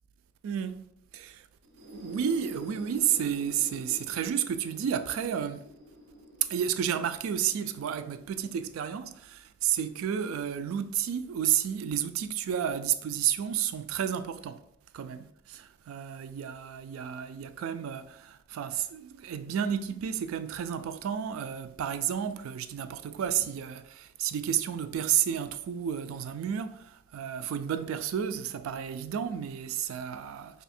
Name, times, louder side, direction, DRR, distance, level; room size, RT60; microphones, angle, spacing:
voice 1, 0.4-1.5 1.9-5.7 6.4-14.6 14.9-30.6, right 9 dB, 85° right, 0.3 m, -31 dB
sound 1, 1.6-9.3, equal, 50° right, 1.1 m, -49 dB
2.7 x 2.5 x 4.1 m
head